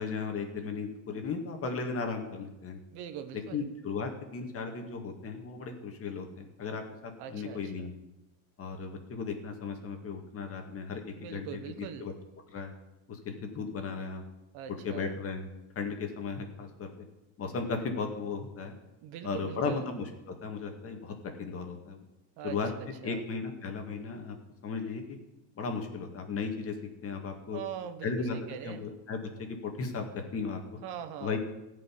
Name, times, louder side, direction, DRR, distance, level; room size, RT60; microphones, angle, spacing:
voice 1, 0.0-2.8 3.5-7.9 8.6-12.1 12.5-12.7 13.1-14.2 14.8-15.5 15.8-16.9 17.4-18.7 19.2-22.0 22.4-22.7 23.0-24.4 24.6-25.2 25.6-26.7 27.0-27.6 28.0-28.4 28.6-30.6 31.2-31.4, left 5 dB, 30° left, 4 dB, 2.1 m, -36 dB
voice 2, 2.9-3.6 7.2-7.9 11.1-12.1 14.5-15.1 19.0-19.8 22.4-23.2 27.5-28.8 30.8-31.4, right 9 dB, 50° right, 10 dB, 1.1 m, -42 dB
15.5 x 5.5 x 9.9 m, 0.96 s
supercardioid pair, 145°, 48 cm